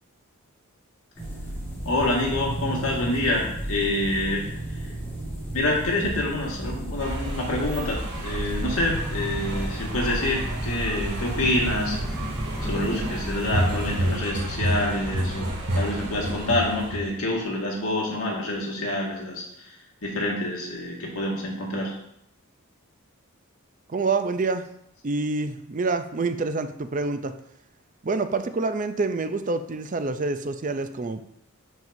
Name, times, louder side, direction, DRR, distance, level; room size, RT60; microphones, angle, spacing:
sound 1, 1.1-14.2, right 1 dB, 10° left, 1.9 m, -33 dB
voice 1, 1.9-4.5 5.5-12.0 12.7-15.5 15.7-19.4 20.0-21.9, left 1 dB, 75° left, -2 dB, 1.9 m, -27 dB
sound 2, 7.0-17.1, right 1 dB, 80° right, 2.4 m, -30 dB
voice 2, 23.9-24.6 25.0-27.3 28.0-31.5, right 3 dB, 35° right, 9 dB, 0.5 m, -27 dB
10.5 x 4.6 x 2.7 m, 0.75 s
head